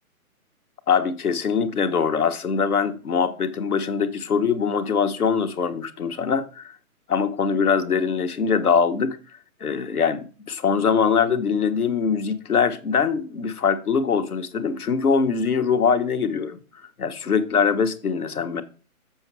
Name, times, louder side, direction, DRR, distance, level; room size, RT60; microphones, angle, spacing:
voice 1, 0.9-6.7 7.1-9.2 9.6-16.6 17.0-18.6, left 6 dB, 80° left, 1.4 m, -22 dB
7.0 x 6.0 x 4.6 m
hypercardioid pair, 155°, 44 cm